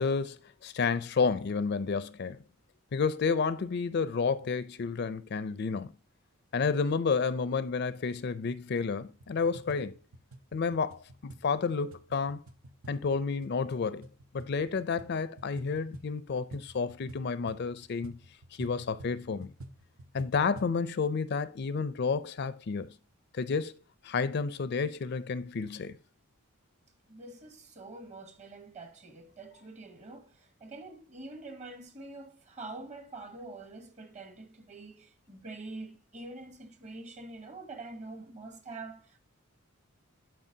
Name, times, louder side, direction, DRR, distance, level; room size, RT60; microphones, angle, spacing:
voice 1, 0.0-2.4 2.9-5.9 6.5-10.0 10.5-12.4 12.9-14.1 14.3-18.2 18.6-19.5 20.1-22.9 23.3-23.8 24.0-26.0, left 5 dB, 50° left, 0.4 m, -30 dB
sound 1, 9.1-20.8, right 1 dB, 85° right, 0.8 m, -51 dB
voice 2, 27.1-39.2, right 2 dB, 35° right, 1.0 m, -45 dB
11.0 x 4.8 x 2.7 m
head